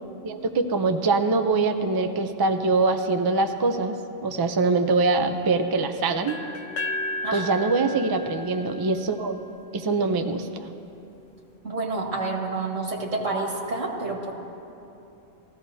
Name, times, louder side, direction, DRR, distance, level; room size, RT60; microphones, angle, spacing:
voice 1, 0.2-4.0 4.2-6.4 7.3-9.3 9.7-10.5, right 3 dB, 40° right, 6 dB, 0.3 m, -23 dB
sound 1, 6.3-10.2, left 2 dB, 75° left, 1.0 m, -34 dB
voice 2, 11.6-14.3, right 3 dB, 75° right, -2 dB, 1.9 m, -29 dB
19.5 x 14.5 x 2.7 m, 2.8 s
omnidirectional pair, 1.3 m